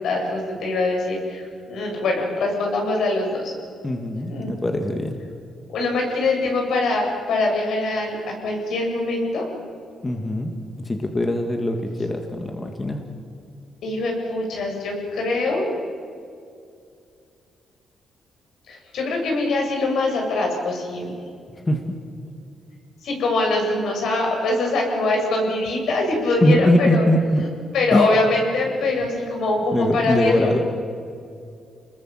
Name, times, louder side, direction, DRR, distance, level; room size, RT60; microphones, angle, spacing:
voice 1, 0.0-3.5 4.3-4.5 5.7-9.5 13.8-15.7 18.7-21.2 23.0-27.0 27.4-27.5 27.7-30.6, left 2 dB, 75° left, 1 dB, 7.3 m, -23 dB
voice 2, 3.8-5.2 10.0-13.0 21.7-22.0 26.4-27.5 27.9-28.1 28.8-28.9 29.7-30.6, left 1 dB, 20° left, 4 dB, 1.9 m, -22 dB
28.5 x 20.5 x 7.6 m, 2.4 s
cardioid pair, 120°, 0 cm